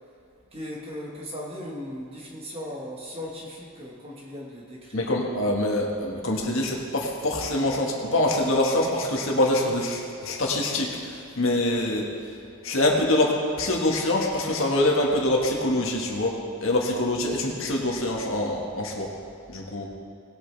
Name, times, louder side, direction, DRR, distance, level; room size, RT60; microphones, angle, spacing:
voice 1, 0.5-5.1, left 1 dB, 25° right, -2 dB, 1.6 m, -37 dB
voice 2, 4.9-12.1 12.6-16.4 16.6-19.1 19.5-19.9, left 1 dB, 60° left, -1 dB, 1.7 m, -25 dB
19.5 x 8.8 x 3.4 m, 2.3 s
head